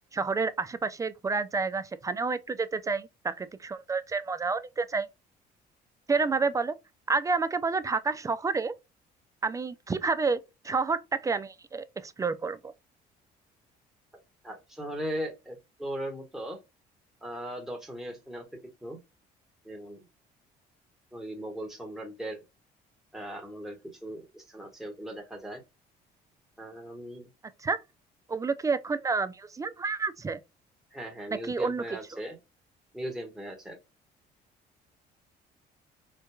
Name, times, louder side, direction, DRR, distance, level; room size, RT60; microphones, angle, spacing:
voice 1, 0.1-5.1 6.1-6.7 7.1-8.8 9.4-10.4 10.6-12.7 27.6-27.8 28.3-30.4 31.3-31.8, right 4 dB, 20° right, 0.3 m, -29 dB
voice 2, 14.4-16.6 17.2-18.4 18.8-19.0 19.6-20.0 21.1-22.4 23.1-25.6 26.6-27.3 30.9-32.4 32.9-33.8, equal, ahead, 1.2 m, -38 dB
4.5 x 2.2 x 2.2 m
cardioid pair, 110°, 17 cm